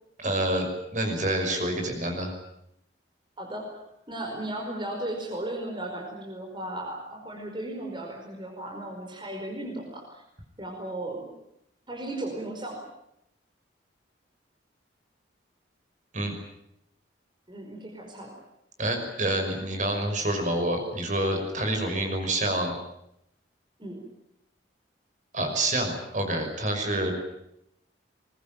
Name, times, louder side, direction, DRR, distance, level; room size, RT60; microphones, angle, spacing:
voice 1, 0.2-0.7 0.9-2.3 16.1-16.3 18.8-22.7 25.3-27.1, right 1 dB, 40° right, 5 dB, 5.9 m, -27 dB
voice 2, 3.4-10.2 10.6-11.2 11.9-12.8 17.5-18.3 23.8-24.0 27.0-27.1, right 1 dB, 25° right, 0 dB, 5.0 m, -36 dB
23.5 x 21.0 x 9.2 m, 0.79 s
head